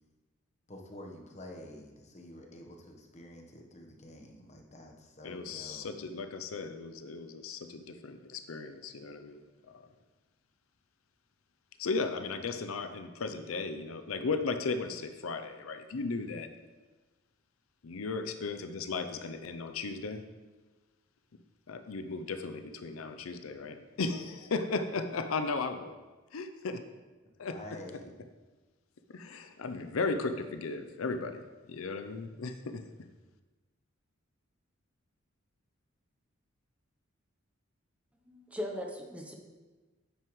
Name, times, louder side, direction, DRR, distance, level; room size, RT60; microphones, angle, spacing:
voice 1, 0.7-5.9 27.4-28.1, left 1 dB, 35° left, 2 dB, 1.2 m, -48 dB
voice 2, 5.2-9.4 9.7-9.8 11.8-16.5 17.8-20.2 21.7-26.0 26.3-26.8 27.4-27.5 29.1-32.8, left 4 dB, 85° left, 9 dB, 0.6 m, -36 dB
voice 3, 38.2-39.3, left 1 dB, 5° right, 2 dB, 0.8 m, -39 dB
9.5 x 7.7 x 3.2 m, 1.3 s
head